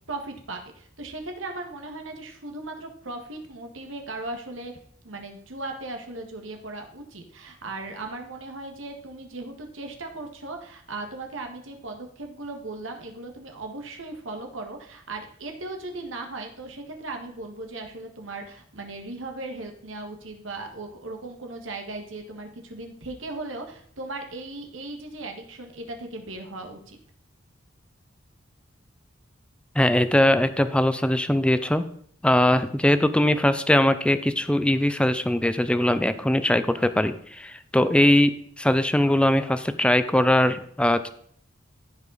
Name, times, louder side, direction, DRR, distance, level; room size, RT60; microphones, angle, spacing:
voice 1, 0.1-4.7 5.0-27.0, right 2 dB, 85° right, 3 dB, 1.6 m, -37 dB
voice 2, 29.7-31.8 32.2-41.1, left 1 dB, 5° left, 12 dB, 0.5 m, -21 dB
14.5 x 5.3 x 4.0 m, 0.62 s
head